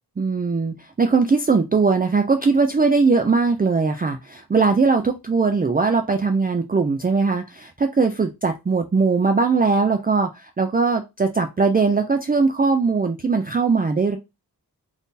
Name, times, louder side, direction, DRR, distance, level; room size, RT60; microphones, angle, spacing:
voice 1, 0.2-14.2, right 4 dB, 25° right, 5 dB, 0.3 m, -20 dB
2.6 x 2.6 x 3.7 m, 0.24 s
wide cardioid pair, 55°, 41 cm